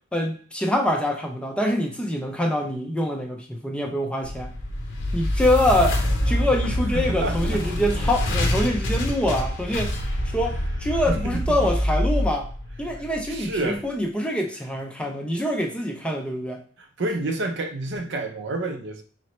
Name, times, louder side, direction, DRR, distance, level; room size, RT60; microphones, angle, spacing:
voice 1, 0.1-4.5 5.1-9.9 10.3-12.5 12.8-16.6, left 1 dB, 5° left, 0.4 m, -25 dB
sound 1, 4.2-13.4, left 1 dB, 60° left, 0.8 m, -26 dB
voice 2, 6.9-7.6 8.0-8.2 10.5-10.6 11.1-11.4 13.3-13.8 16.8-19.0, right 2 dB, 60° right, 0.6 m, -29 dB
4.0 x 3.0 x 3.0 m
head